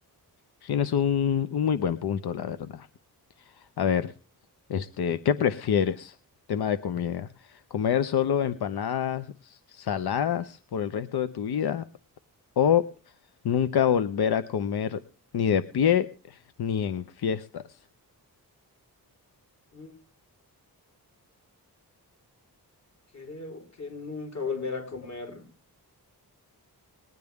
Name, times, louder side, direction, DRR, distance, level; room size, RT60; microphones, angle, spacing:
voice 1, 0.6-2.9 3.8-4.1 4.7-6.1 6.5-11.9 12.6-12.8 13.4-15.0 15.3-17.8, left 8 dB, 85° left, 12 dB, 0.7 m, -26 dB
voice 2, 23.1-25.4, left 4 dB, 45° left, 2 dB, 4.3 m, -36 dB
20.0 x 10.5 x 3.5 m, 0.38 s
wide cardioid pair, 130°, 38 cm